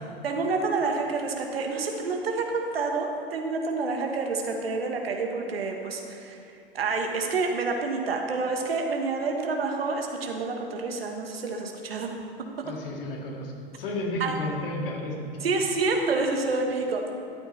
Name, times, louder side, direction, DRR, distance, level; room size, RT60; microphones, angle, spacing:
voice 1, 0.2-6.4 6.7-12.1 12.6-12.7 14.2-14.4 15.4-17.2, right 3 dB, 80° right, 2 dB, 1.3 m, -28 dB
voice 2, 12.6-15.5, left 1 dB, 70° left, 0 dB, 2.1 m, -33 dB
13.0 x 9.1 x 3.2 m, 2.5 s
hypercardioid pair, 100°, 29 cm